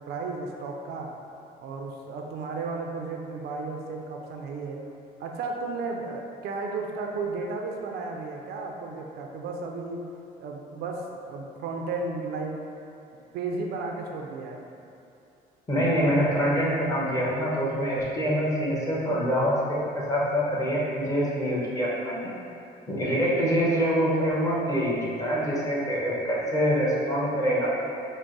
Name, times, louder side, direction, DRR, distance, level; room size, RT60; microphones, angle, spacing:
voice 1, 0.1-1.2 1.6-4.8 5.2-10.0 10.4-12.6 13.3-14.6, right 3 dB, 75° right, 1 dB, 0.5 m, -34 dB
voice 2, 15.7-22.3 22.9-27.7, equal, 20° left, -7 dB, 1.0 m, -25 dB
4.6 x 2.0 x 3.9 m, 2.6 s
cardioid pair, 110°, 17 cm